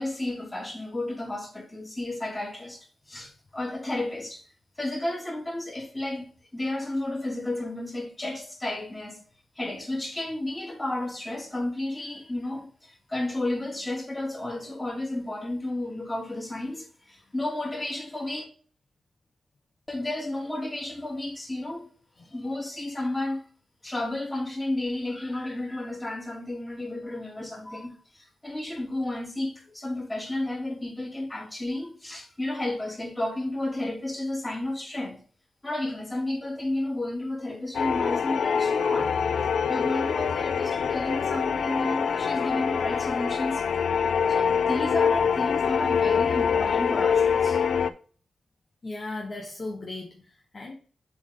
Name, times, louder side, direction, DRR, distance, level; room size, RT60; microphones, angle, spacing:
voice 1, 0.0-2.8 3.1-4.4 4.8-9.2 9.6-18.4 19.9-21.9 22.3-23.4 23.8-35.2 35.6-39.1 39.7-43.6 44.3-47.6, left 1 dB, 20° left, 2.6 m, -32 dB
sound 1, 37.7-47.9, left 6 dB, 80° left, 0.4 m, -25 dB
voice 2, 48.8-50.7, left 2 dB, 45° left, 1.1 m, -37 dB
7.0 x 4.3 x 3.7 m
cardioid pair, 65°, 0 cm